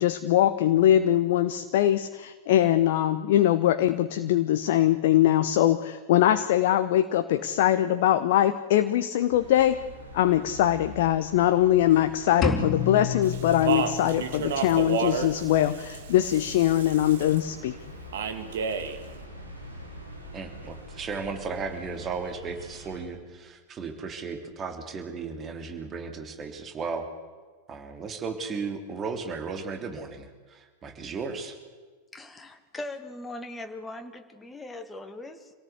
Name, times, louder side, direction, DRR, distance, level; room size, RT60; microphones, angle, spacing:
voice 1, 0.0-9.8 10.1-17.8, left 12 dB, 55° left, 10 dB, 1.0 m, -22 dB
sound 1, 9.3-23.1, equal, 80° right, 4.8 m, -44 dB
sound 2, 12.4-14.4, left 5 dB, 30° left, 3.9 m, -29 dB
Speech, 13.2-17.4 18.1-19.0, right 7 dB, 60° right, 2.2 m, -31 dB
voice 2, 20.3-27.1 27.7-31.6, right 4 dB, 25° right, 6 dB, 3.2 m, -35 dB
voice 3, 32.1-35.5, left 2 dB, 10° left, 5 dB, 2.3 m, -40 dB
27.5 x 17.5 x 8.2 m, 1.5 s
figure-of-eight pair, 90°, 0 cm